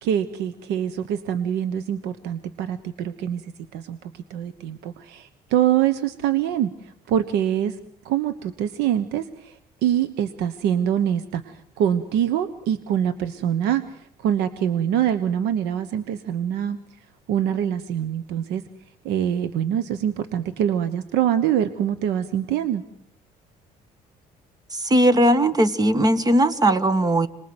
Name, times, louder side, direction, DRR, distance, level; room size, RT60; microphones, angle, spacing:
voice 1, 0.0-7.8 8.0-16.8 17.3-18.6 19.0-22.8, right 10 dB, 90° right, 12 dB, 1.2 m, -24 dB
voice 2, 24.7-27.3, right 1 dB, 20° right, 13 dB, 1.6 m, -18 dB
27.0 x 21.0 x 8.0 m, 0.70 s
cardioid pair, 110°, 17 cm